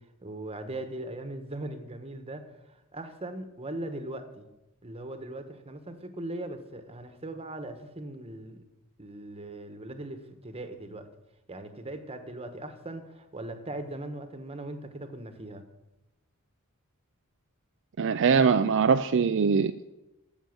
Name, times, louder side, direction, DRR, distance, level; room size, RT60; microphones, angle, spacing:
voice 1, 0.2-4.4 4.8-8.6 9.0-11.1 11.5-15.6, right 1 dB, 30° right, 8 dB, 1.2 m, -39 dB
voice 2, 18.0-19.9, right 5 dB, 60° right, 8 dB, 0.4 m, -23 dB
13.0 x 7.1 x 7.2 m, 0.96 s
head